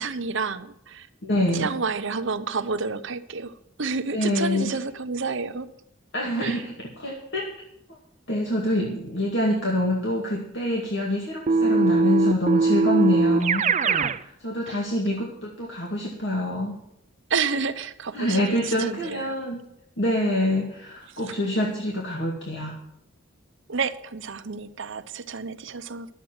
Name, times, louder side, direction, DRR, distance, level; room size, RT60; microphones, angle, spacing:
voice 1, 0.0-1.1 1.6-3.5 3.8-5.7 6.4-6.6 14.7-14.8 17.3-18.4 18.8-19.3 23.7-26.1, right 5 dB, 65° right, 10 dB, 0.9 m, -29 dB
voice 2, 1.2-1.7 4.1-4.7 6.1-7.5 7.9-8.0 8.3-13.6 14.1-16.7 18.1-19.6 20.0-22.8, left 1 dB, 60° left, -1 dB, 2.2 m, -26 dB
Keyboard (musical), 11.5-14.2, right 3 dB, 35° right, 0.5 m, -21 dB
12.0 x 8.0 x 7.8 m, 0.79 s
head